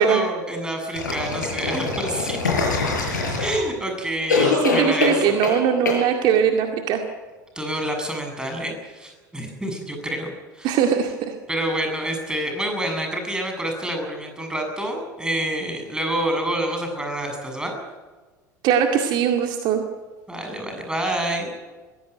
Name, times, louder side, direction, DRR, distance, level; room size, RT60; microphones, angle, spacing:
voice 1, 0.0-2.4 3.4-5.5 7.6-10.8 11.5-17.7 20.3-21.5, right 1 dB, 10° right, 3 dB, 7.3 m, -28 dB
sound 1, 0.9-3.8 4.3-5.6 5.9-6.0, left 4 dB, 75° left, 6.5 m, -23 dB
voice 2, 4.8-7.0 10.6-11.3 18.6-19.8, right 8 dB, 50° right, 4 dB, 2.1 m, -20 dB
23.0 x 16.5 x 9.4 m, 1.4 s
figure-of-eight pair, 70°, 10 cm